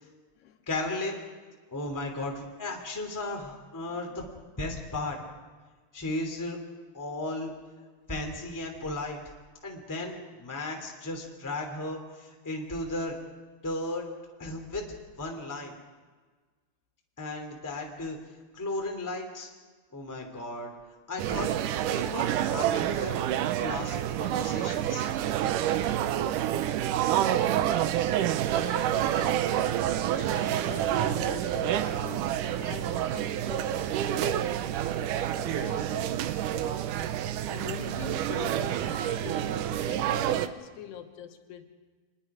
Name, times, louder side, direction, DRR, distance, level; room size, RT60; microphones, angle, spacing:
voice 1, 0.7-1.2 1.7-4.3 4.6-5.2 5.9-6.6 6.9-7.5 8.1-9.2 9.6-13.2 13.6-14.1 14.4-14.8 15.2-15.7 17.2-18.2 18.5-19.5 19.9-20.7 21.1-21.5 21.9-23.2 23.6-25.1, left 2 dB, 5° left, 1 dB, 2.1 m, -35 dB
voice 2, 3.8-4.3 28.1-36.9 37.5-41.7, left 8 dB, 80° left, 5 dB, 3.3 m, -44 dB
sound 1, 21.2-40.5, right 11 dB, 80° right, 1.9 m, -28 dB
25.5 x 21.5 x 5.0 m, 1.4 s
omnidirectional pair, 4.6 m